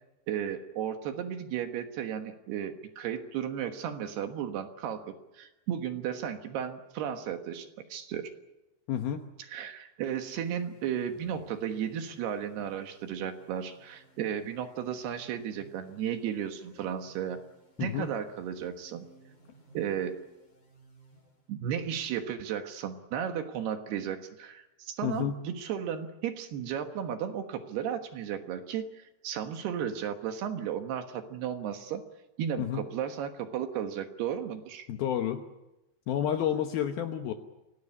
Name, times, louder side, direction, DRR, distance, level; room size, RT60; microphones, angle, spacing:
voice 1, 0.3-8.3 9.5-17.4 17.8-19.1 19.7-20.2 21.5-32.0 32.4-34.9, right 9 dB, 65° right, 7 dB, 3.1 m, -34 dB
voice 2, 8.9-9.2 17.8-18.1 25.0-25.4 32.6-32.8 34.9-35.4 36.1-37.3, left 9 dB, 70° left, 6 dB, 2.4 m, -30 dB
sound 1, 10.0-21.8, right 2 dB, 30° left, 6.6 m, -59 dB
25.5 x 17.5 x 9.7 m, 0.97 s
omnidirectional pair, 5.5 m